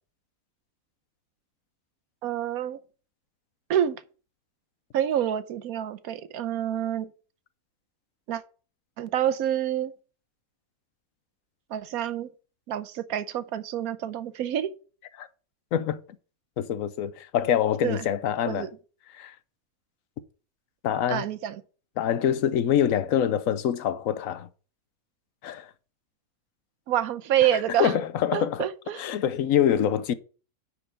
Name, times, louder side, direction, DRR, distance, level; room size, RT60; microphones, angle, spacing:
voice 1, 2.2-2.8 3.7-4.0 4.9-7.1 8.3-8.4 9.0-9.9 11.7-12.3 12.7-14.7 17.8-18.0 18.5-18.7 21.1-21.6 26.9-27.9 28.3-29.0, right 10 dB, 80° right, 1.2 m, -27 dB
voice 2, 16.6-18.7 19.1-19.3 20.8-21.2 22.0-24.5 25.4-25.7 27.7-28.7 29.0-30.1, left 9 dB, 70° left, 1.1 m, -25 dB
10.0 x 4.5 x 5.1 m
omnidirectional pair, 1.5 m